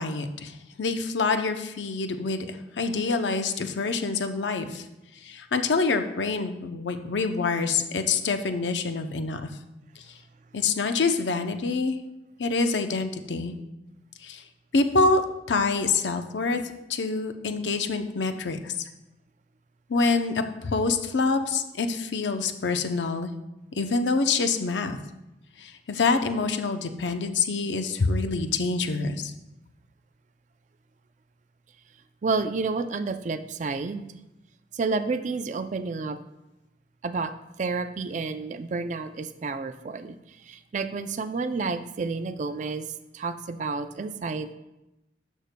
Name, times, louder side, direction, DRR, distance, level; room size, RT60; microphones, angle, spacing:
voice 1, 0.0-4.8 5.2-9.4 10.0-10.1 10.5-12.0 12.4-13.5 14.2-14.4 14.7-16.6 16.9-18.9 19.9-23.3 23.7-25.0 25.6-29.3, left 4 dB, 90° left, 7 dB, 0.6 m, -26 dB
voice 2, 32.2-34.2 34.7-36.2 37.0-37.3 37.6-40.2 40.4-42.9 43.1-44.5, right 4 dB, 45° right, 10 dB, 0.4 m, -30 dB
11.5 x 6.3 x 2.2 m, 0.94 s
head